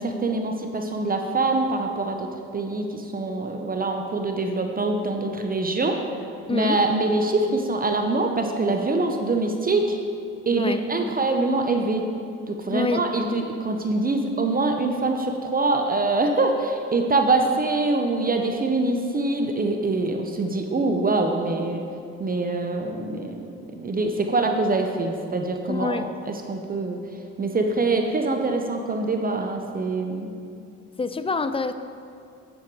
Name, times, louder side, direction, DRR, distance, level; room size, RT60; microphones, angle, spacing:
voice 1, 0.0-2.3 2.5-6.0 6.5-10.0 10.5-12.1 12.5-21.8 22.2-23.4 23.8-27.0 27.4-30.3, right 2 dB, 30° right, 4 dB, 0.7 m, -24 dB
voice 2, 6.5-6.8 10.5-10.8 12.7-13.0 25.7-26.1 31.0-31.7, left 4 dB, 20° left, 11 dB, 0.4 m, -26 dB
8.5 x 6.5 x 4.6 m, 2.5 s
cardioid pair, 90°, 30 cm